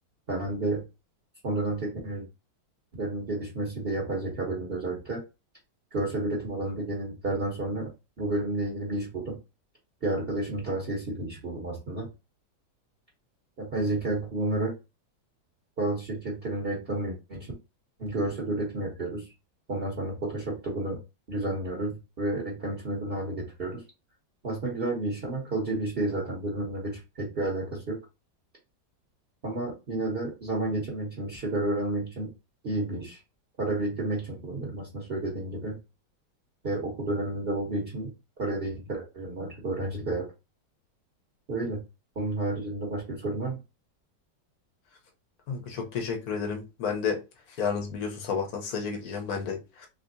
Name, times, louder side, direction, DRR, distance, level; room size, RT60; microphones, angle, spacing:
voice 1, 0.3-0.8 1.4-2.2 2.9-5.2 5.9-7.9 8.2-9.4 10.0-12.1 13.6-14.7 15.8-17.5 18.0-19.3 19.7-21.0 21.3-23.8 24.4-28.0 29.4-32.3 32.6-33.2 33.6-35.8 36.6-38.1 38.4-40.3 41.5-41.8 42.2-43.6, right 2 dB, 40° right, 1.0 m, -31 dB
voice 2, 45.5-47.2 47.6-49.9, left 6 dB, 60° left, 1.3 m, -31 dB
3.4 x 3.4 x 2.6 m
omnidirectional pair, 1.9 m